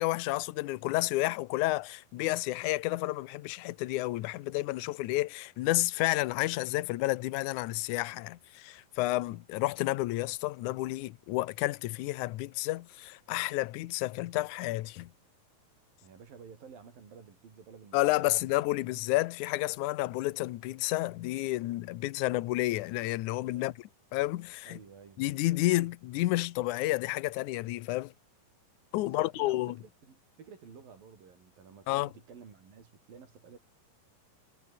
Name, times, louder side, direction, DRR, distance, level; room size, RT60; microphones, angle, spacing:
voice 1, 0.0-15.1 17.9-24.8 25.2-28.1 28.9-29.8 31.9-32.1, left 18 dB, 75° left, 2.1 m, -31 dB
voice 2, 16.0-18.9 23.5-23.8 24.6-25.2 29.0-33.6, right 6 dB, 85° right, 6.0 m, -52 dB
omnidirectional pair, 3.9 m